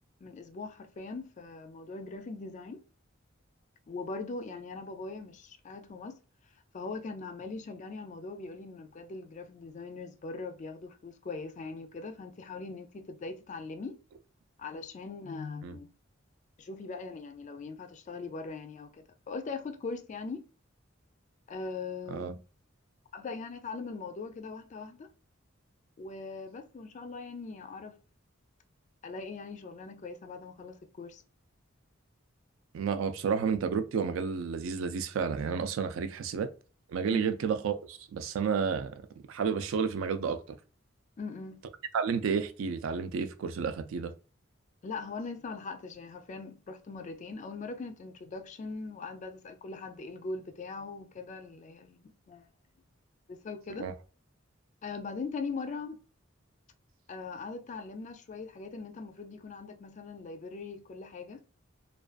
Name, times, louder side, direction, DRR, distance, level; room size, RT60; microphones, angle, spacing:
voice 1, 0.2-2.8 3.9-6.2 6.7-14.0 14.6-15.9 16.6-20.5 21.5-22.3 23.1-25.1 26.0-28.0 29.0-31.2 37.1-37.3 41.2-41.6 44.8-52.5 53.3-53.9 54.8-56.0 57.1-61.4, left 4 dB, 35° left, 0.3 m, -41 dB
voice 2, 32.7-36.5 36.9-38.9 39.3-40.6 41.9-44.1 53.8-53.9, right 6 dB, 80° right, 0.3 m, -31 dB
2.4 x 2.2 x 2.3 m
head